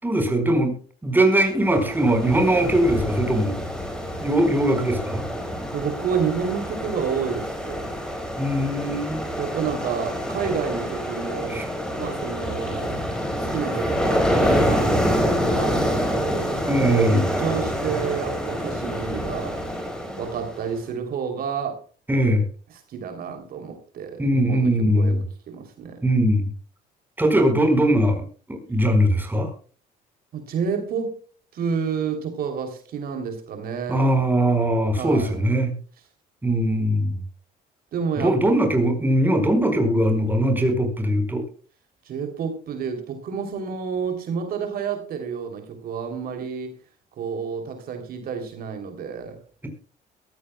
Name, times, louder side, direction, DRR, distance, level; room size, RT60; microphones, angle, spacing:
voice 1, 0.0-0.7 1.0-3.6 4.2-5.2 8.4-9.2 11.5-11.6 16.7-17.2 22.1-22.5 24.2-25.2 26.0-26.5 27.2-29.5 33.9-35.7 36.4-37.2 38.2-41.4, right 1 dB, 10° right, 4.7 m, -20 dB
Ocean, 1.6-20.7, equal, 5° left, 4.4 m, -27 dB
voice 2, 5.7-8.0 9.4-11.7 12.0-13.0 13.5-16.5 16.9-19.6 20.2-21.8 22.9-25.2 25.5-26.0 30.3-31.1 31.5-34.2 35.0-35.4 37.9-38.4 42.0-46.7 47.2-49.4, right 6 dB, 60° right, 3.0 m, -29 dB
22.0 x 14.5 x 2.2 m
cardioid pair, 110°, 17 cm